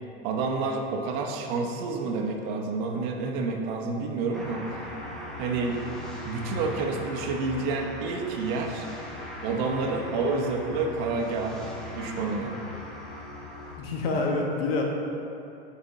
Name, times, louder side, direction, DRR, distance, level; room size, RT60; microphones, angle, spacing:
voice 1, 0.2-4.6 5.4-5.8 6.2-8.9 9.4-12.6, right 3 dB, 45° right, 2 dB, 0.7 m, -29 dB
sound 1, 4.3-13.8, left 1 dB, ahead, 0.6 m, -39 dB
voice 2, 13.8-14.8, left 3 dB, 65° left, 0 dB, 1.1 m, -27 dB
8.1 x 5.0 x 2.7 m, 2.8 s
supercardioid pair, 130°, 32 cm